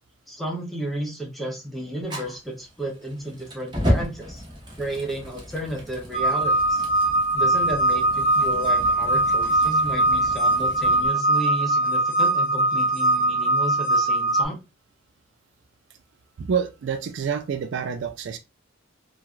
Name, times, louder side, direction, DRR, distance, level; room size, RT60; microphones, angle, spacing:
voice 1, 0.3-4.4 4.8-6.8 7.3-14.6, equal, ahead, 0.8 m, -32 dB
Fire, 2.0-11.1, equal, 25° right, 1.0 m, -33 dB
sound 1, 6.1-14.4, right 2 dB, 40° left, 0.4 m, -21 dB
voice 2, 16.4-18.4, right 7 dB, 65° right, 0.3 m, -27 dB
3.1 x 2.3 x 2.4 m
head